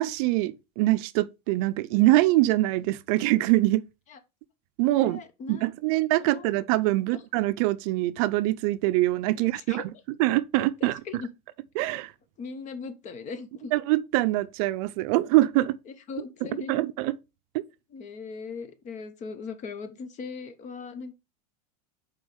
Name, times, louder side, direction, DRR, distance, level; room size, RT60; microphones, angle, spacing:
voice 1, 0.0-3.9 4.8-5.2 5.5-9.9 10.2-11.0 11.8-12.1 13.7-15.8 16.7-17.2, right 17 dB, 60° right, 0.5 m, -24 dB
voice 2, 4.9-5.7 6.2-6.5 7.1-7.2 9.6-9.8 10.8-11.3 12.4-13.7 15.9-16.7 17.9-21.1, left 5 dB, 35° left, 1.1 m, -39 dB
5.3 x 4.0 x 5.2 m
supercardioid pair, 120°, 21 cm